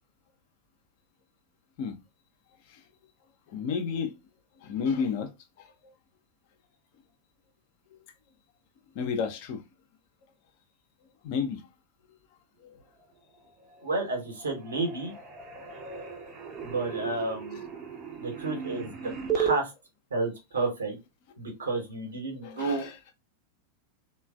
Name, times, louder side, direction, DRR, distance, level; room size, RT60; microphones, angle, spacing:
voice 1, 3.5-4.1 4.6-5.3 5.6-5.9 8.9-9.6 11.2-11.6 12.6-12.8 17.5-17.6 20.6-20.7 21.7-21.8 22.4-23.0, left 6 dB, 45° left, 0.5 m, -32 dB
sound 1, 13.6-14.1 14.4-19.6, right 8 dB, 25° right, 0.6 m, -35 dB
voice 2, 13.8-15.1 16.6-17.6 18.2-18.9 19.3-19.7 20.1-21.0 21.4-22.9, right 3 dB, 70° right, 1.1 m, -31 dB
3.1 x 2.2 x 2.3 m
figure-of-eight pair, 90°, 0 cm